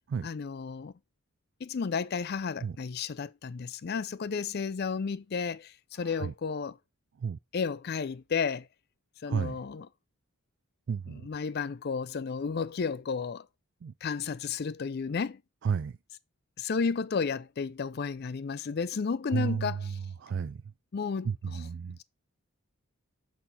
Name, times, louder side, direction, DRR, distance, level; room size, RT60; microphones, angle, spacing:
voice 1, 0.2-0.9 1.6-6.8 7.5-8.7 9.2-9.9 11.1-13.4 14.0-15.4 16.6-20.0 20.9-21.7, left 5 dB, 45° left, 0.4 m, -32 dB
voice 2, 10.9-11.3 13.8-13.9 15.6-15.9 19.3-19.9 20.2-20.6 21.2-22.0, right 6 dB, 50° right, 0.3 m, -32 dB
7.8 x 4.3 x 4.0 m
head